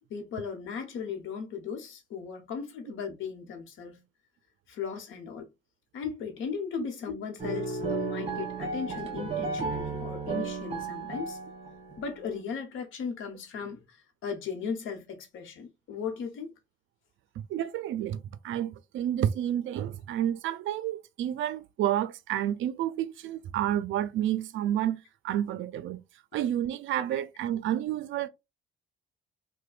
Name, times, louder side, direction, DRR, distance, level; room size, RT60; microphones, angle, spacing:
voice 1, 0.1-4.0 4.7-5.5 5.9-11.4 12.0-14.0 14.2-16.5, left 6 dB, 80° left, 0.9 m, -37 dB
sound 1, 7.4-12.0, right 4 dB, 30° right, 1.3 m, -33 dB
voice 2, 17.4-26.0 26.3-28.3, right 11 dB, 75° right, 0.4 m, -30 dB
3.0 x 2.1 x 2.4 m
cardioid pair, 90°, 20 cm